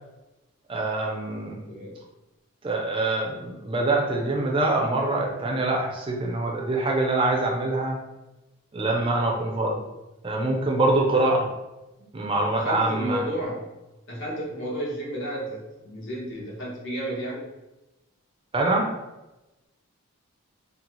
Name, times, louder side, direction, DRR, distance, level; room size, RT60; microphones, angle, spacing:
voice 1, 0.7-1.6 2.6-8.0 8.7-9.8 10.2-11.5 12.1-13.2 18.5-18.9, right 2 dB, 25° right, 0 dB, 0.4 m, -24 dB
voice 2, 1.5-2.0 12.5-13.7 14.1-17.5, equal, 55° left, -4 dB, 1.0 m, -32 dB
3.9 x 2.0 x 2.9 m, 1.0 s
head